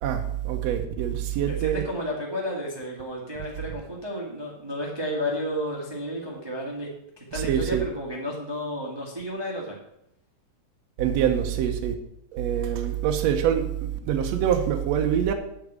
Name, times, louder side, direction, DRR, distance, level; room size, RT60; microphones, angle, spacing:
voice 1, 0.0-1.8 7.3-7.8 11.0-11.9 12.3-15.3, right 9 dB, 70° right, 4 dB, 1.7 m, -25 dB
voice 2, 1.5-6.9 7.2-9.7, equal, 15° right, -3 dB, 1.0 m, -32 dB
8.5 x 6.0 x 8.0 m, 0.79 s
omnidirectional pair, 3.7 m